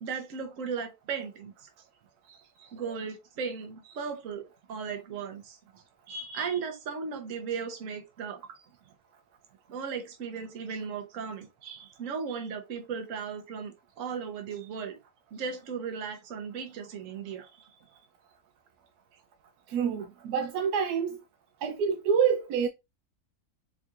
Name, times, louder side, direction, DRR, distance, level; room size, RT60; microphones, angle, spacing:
voice 1, 0.0-1.7 2.3-8.6 9.7-15.0 15.3-17.7, right 6 dB, 60° right, 1.2 m, -37 dB
voice 2, 19.7-21.2 21.6-22.7, right 7 dB, 85° right, 1.1 m, -27 dB
4.2 x 3.7 x 2.4 m
omnidirectional pair, 1.6 m